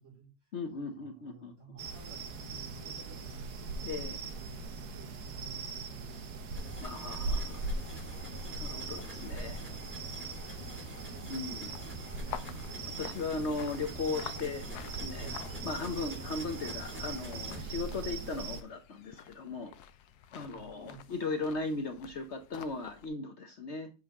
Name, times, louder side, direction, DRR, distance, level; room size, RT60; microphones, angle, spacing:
voice 1, 0.0-0.5 0.9-3.8 4.3-6.5 14.3-14.5 15.2-15.4 16.0-16.3 20.5-21.1, right 3 dB, 50° right, -4 dB, 4.9 m, -53 dB
voice 2, 0.5-1.5 3.8-4.2 6.8-7.6 8.6-9.6 11.3-11.7 13.0-15.3 15.6-19.7 20.3-23.9, left 3 dB, 50° left, 6 dB, 1.1 m, -37 dB
sound 1, 1.8-18.6, right 3 dB, 85° right, 1.6 m, -40 dB
sound 2, 6.5-17.6, left 1 dB, 5° right, 2.4 m, -47 dB
sound 3, 7.2-23.1, left 10 dB, 90° left, 1.2 m, -51 dB
7.6 x 4.7 x 3.5 m, 0.32 s
omnidirectional pair, 1.6 m